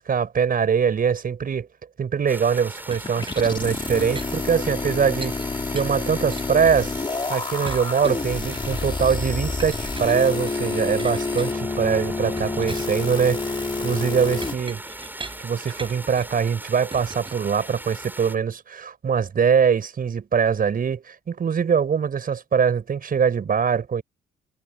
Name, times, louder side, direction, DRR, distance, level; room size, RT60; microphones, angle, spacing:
voice 1, 0.0-1.7 2.0-5.4 5.7-6.9 7.3-14.8 15.4-24.0, right 7 dB, 50° right, 5.9 m, -23 dB
sound 1, 2.3-18.4, right 1 dB, 10° right, 7.6 m, -39 dB
Chink clink, 2.9-5.4 5.8-7.2 7.6-8.9 9.6-11.9 12.4-16.4 16.9-18.1, right 3 dB, 25° right, 7.2 m, -42 dB
sound 2, 3.0-14.5, left 3 dB, 25° left, 2.8 m, -28 dB
supercardioid pair, 70°, 19 cm